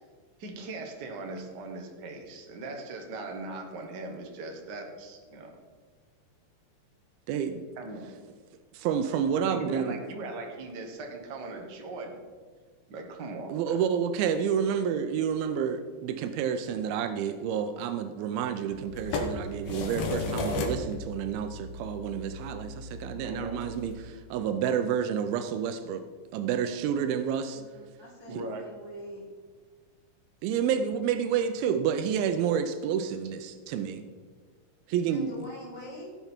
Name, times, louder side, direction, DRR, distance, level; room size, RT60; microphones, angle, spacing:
voice 1, 0.4-5.5 7.8-8.1 9.4-12.2 12.9-13.8 23.2-23.6 28.3-28.6, right 2 dB, 65° right, 2 dB, 1.0 m, -39 dB
voice 2, 7.3-7.6 8.7-10.0 13.5-26.0 26.3-27.6 30.4-34.0 34.9-35.3, right 8 dB, 85° right, 9 dB, 2.5 m, -29 dB
sound 1, 18.7-23.9, left 2 dB, 90° left, 3.1 m, -35 dB
voice 3, 27.5-29.3 35.1-36.1, left 1 dB, 10° right, -4 dB, 1.8 m, -44 dB
17.0 x 6.8 x 4.4 m, 1.5 s
omnidirectional pair, 4.2 m